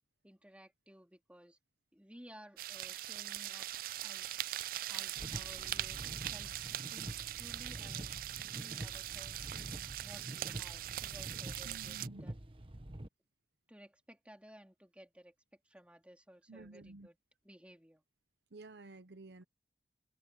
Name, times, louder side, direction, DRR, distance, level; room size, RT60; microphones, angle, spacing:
voice 1, 0.2-1.6 1.9-3.7 4.0-4.4 4.9-8.1 8.5-9.5 10.0-12.4 13.7-17.2 17.4-18.0, equal, 5° right, 3.3 m, -57 dB
sound 1, 2.6-12.1, right 14 dB, 50° right, 0.3 m, -41 dB
sound 2, 5.2-13.1, right 1 dB, 30° right, 1.2 m, -47 dB
voice 2, 11.6-12.2 16.5-17.1 18.5-19.4, right 2 dB, 70° right, 0.8 m, -52 dB
head